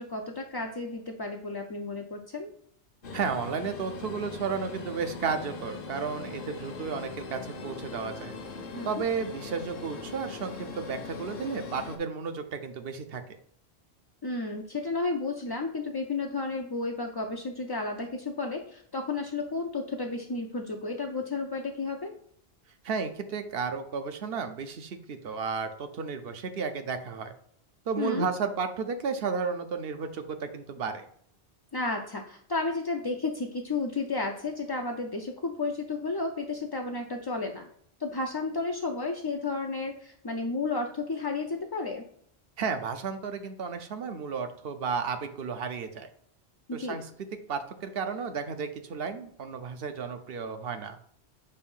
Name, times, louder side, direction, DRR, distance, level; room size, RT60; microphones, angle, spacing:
voice 1, 0.0-2.5 8.7-9.0 14.2-22.1 28.0-28.3 31.7-37.7 38.0-42.0 46.7-47.0, left 3 dB, 40° left, 2 dB, 0.3 m, -32 dB
sound 1, 3.0-12.0, left 4 dB, 60° left, 0.9 m, -40 dB
voice 2, 3.1-8.3 8.8-13.2 22.8-27.3 27.9-31.0 42.6-46.1 46.7-47.1 47.5-51.0, right 5 dB, 65° right, 8 dB, 0.9 m, -33 dB
6.6 x 2.6 x 5.4 m, 0.63 s
omnidirectional pair, 1.1 m